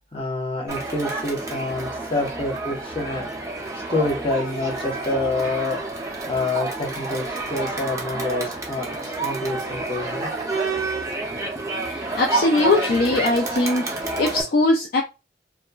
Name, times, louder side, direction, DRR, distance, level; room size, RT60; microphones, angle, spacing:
voice 1, 0.1-3.3 3.9-5.8 6.3-10.3, left 2 dB, 30° left, 0 dB, 0.8 m, -27 dB
Crowd, 0.7-14.4, right 3 dB, 20° right, 0.5 m, -29 dB
voice 2, 11.8-15.0, left 2 dB, 55° left, 2 dB, 0.3 m, -21 dB
2.9 x 2.4 x 2.2 m, 0.28 s
head